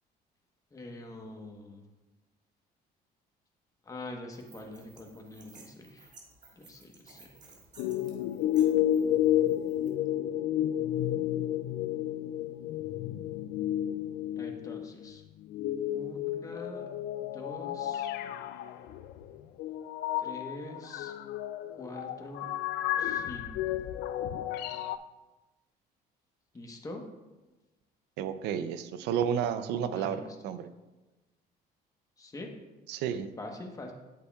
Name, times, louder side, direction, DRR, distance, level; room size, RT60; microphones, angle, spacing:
voice 1, 0.7-1.8 3.9-6.1 6.6-7.3 14.4-15.2 15.9-16.9 17.3-18.1 20.2-21.1 21.7-23.8 26.5-27.1 29.9-30.3 32.2-32.5 33.4-33.9, left 2 dB, 20° left, 3 dB, 1.1 m, -44 dB
sound 1, 4.3-9.9, right 4 dB, 45° right, 1.7 m, -57 dB
sound 2, 7.8-14.9 15.4-25.0, left 11 dB, 80° left, 0.4 m, -31 dB
voice 2, 28.2-30.7 32.9-33.3, right 8 dB, 90° right, 11 dB, 0.5 m, -31 dB
8.3 x 7.9 x 2.3 m, 1.1 s
cardioid pair, 110°, 17 cm